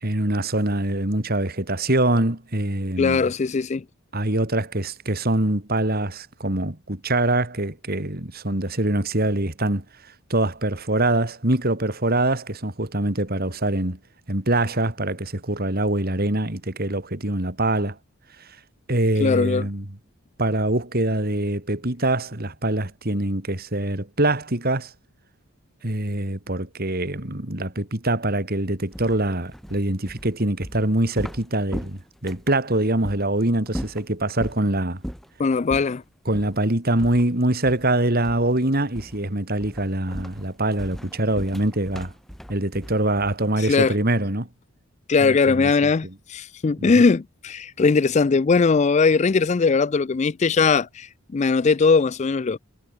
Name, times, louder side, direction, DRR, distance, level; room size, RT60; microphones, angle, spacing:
voice 1, 0.0-3.2 4.1-9.8 10.3-14.0 14.3-17.9 18.9-19.8 20.4-24.9 25.8-35.0 36.3-42.1 42.5-44.5 45.2-45.7 46.0-46.1 46.8-46.9, right 1 dB, 45° right, 2.9 m, -24 dB
voice 2, 3.0-3.8 19.2-19.7 35.4-36.0 43.6-43.9 45.1-52.6, left 4 dB, 30° left, 0.4 m, -20 dB
sound 1, 28.9-32.6 33.0-33.2 33.7-34.6 35.0-35.3 35.7-35.9 36.3-36.6 37.0-38.0 38.2-38.6 38.9-39.3 39.6-43.5, equal, ahead, 3.1 m, -37 dB
head